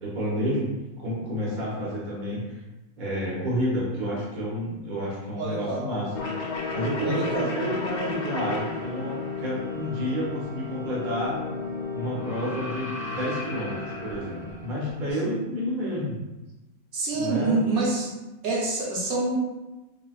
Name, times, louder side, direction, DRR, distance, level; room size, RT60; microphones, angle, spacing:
voice 1, 0.0-0.7 1.0-2.5 3.0-6.1 6.7-11.4 11.9-16.2 17.1-17.6, equal, 40° right, -6 dB, 0.9 m, -30 dB
voice 2, 5.4-6.0 7.0-7.8 16.9-18.1 18.4-19.4, right 2 dB, 80° right, -4 dB, 1.2 m, -27 dB
sound 1, 6.1-15.1, left 4 dB, 85° left, 1.1 m, -33 dB
3.7 x 2.2 x 2.3 m, 1.0 s
omnidirectional pair, 1.6 m